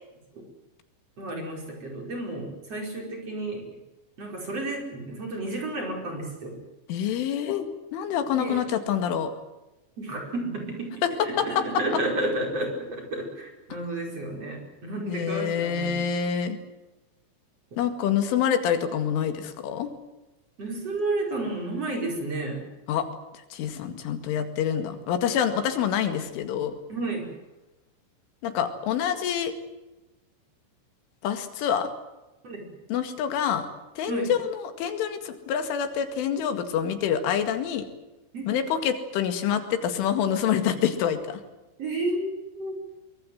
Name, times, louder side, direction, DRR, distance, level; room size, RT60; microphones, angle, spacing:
voice 1, 1.2-3.6 4.2-6.6 8.4-8.6 10.0-16.0 20.6-22.6 26.9-27.3 32.4-32.6 34.1-34.3 38.3-38.5 41.8-42.8, right 2 dB, 30° right, 2 dB, 5.9 m, -31 dB
voice 2, 6.9-7.7 7.9-9.3 11.0-11.1 11.4-11.6 15.1-16.6 17.8-19.9 22.9-23.1 23.5-26.8 28.4-29.5 31.2-31.9 32.9-33.7 34.0-37.9 38.5-41.4, left 8 dB, 90° left, 8 dB, 4.6 m, -26 dB
23.5 x 23.5 x 7.8 m, 1.0 s
omnidirectional pair, 5.4 m